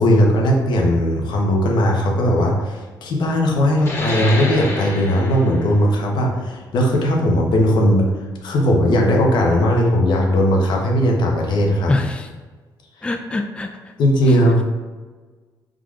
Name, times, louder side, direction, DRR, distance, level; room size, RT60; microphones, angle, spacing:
voice 1, 0.0-8.1 8.4-11.9 14.0-14.6, equal, 70° left, 0 dB, 0.9 m, -18 dB
sound 1, 3.8-8.9, left 1 dB, 30° left, 1.3 m, -30 dB
voice 2, 11.9-12.3 13.0-13.7, left 2 dB, 15° left, 4 dB, 0.3 m, -23 dB
4.8 x 3.8 x 2.4 m, 1.4 s
cardioid pair, 90°, 8 cm